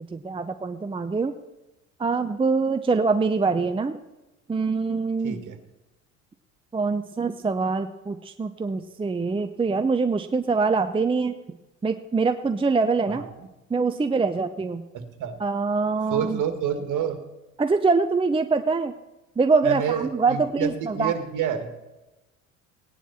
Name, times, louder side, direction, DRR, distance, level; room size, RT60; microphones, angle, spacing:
voice 1, 0.0-1.3 2.0-4.0 4.5-5.4 6.7-11.3 11.8-13.2 13.7-14.8 15.4-16.4 17.6-18.9 19.4-21.1, right 4 dB, 15° right, 8 dB, 0.7 m, -24 dB
voice 2, 5.2-5.6 13.2-13.3 14.9-15.4 16.1-17.2 19.6-21.7, right 8 dB, 50° right, 7 dB, 2.1 m, -28 dB
17.5 x 10.0 x 4.3 m, 1.0 s
hypercardioid pair, 70°, 40 cm